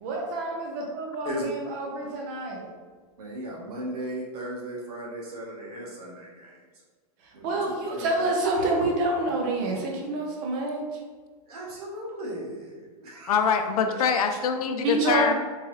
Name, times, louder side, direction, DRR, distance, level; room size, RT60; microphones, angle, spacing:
voice 1, 0.0-1.3 1.7-2.7 7.4-10.9 14.8-15.3, right 2 dB, 30° right, 0 dB, 0.6 m, -27 dB
voice 2, 3.2-6.6 7.3-7.6 7.9-8.3 11.5-13.4 13.9-14.0, right 1 dB, 75° right, -3 dB, 1.1 m, -36 dB
voice 3, 13.3-15.3, left 6 dB, 70° left, 6 dB, 0.5 m, -24 dB
3.8 x 2.7 x 3.0 m, 1.5 s
supercardioid pair, 165°, 19 cm